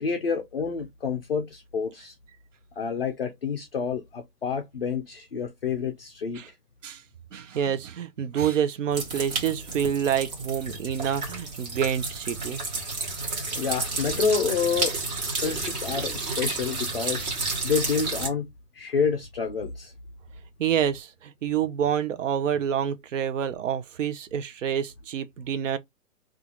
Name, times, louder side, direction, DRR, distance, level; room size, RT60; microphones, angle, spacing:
voice 1, 0.0-2.1 2.8-6.4 13.6-15.0 15.4-17.2 17.6-19.9, left 5 dB, 40° left, 0.4 m, -28 dB
voice 2, 7.3-12.6 20.6-25.8, right 9 dB, 50° right, 0.6 m, -27 dB
sound 1, 8.9-18.3, right 3 dB, 25° right, 1.0 m, -31 dB
3.7 x 2.4 x 2.9 m
hypercardioid pair, 160°, 48 cm